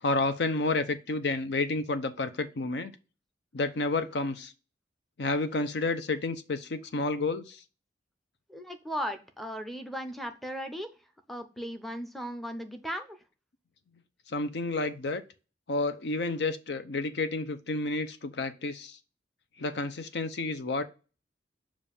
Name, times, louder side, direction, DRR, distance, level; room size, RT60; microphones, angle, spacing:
voice 1, 0.0-2.9 3.5-4.5 5.2-7.6 14.3-15.2 15.7-19.0 19.6-20.8, left 3 dB, 70° left, 0.6 m, -30 dB
voice 2, 8.5-10.9 11.3-13.2, equal, ahead, 0.6 m, -37 dB
7.1 x 2.5 x 5.5 m
head